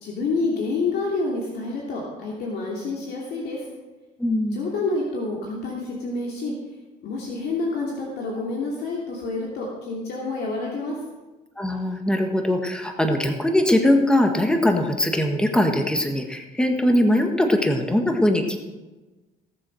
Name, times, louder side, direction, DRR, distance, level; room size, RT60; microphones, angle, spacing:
voice 1, 0.0-3.7 4.5-6.5 7.0-11.0, left 3 dB, 75° left, -2 dB, 2.8 m, -28 dB
voice 2, 4.2-4.6 11.6-18.6, left 1 dB, 5° left, 4 dB, 1.6 m, -21 dB
17.5 x 7.4 x 6.3 m, 1.2 s
cardioid pair, 110°, 17 cm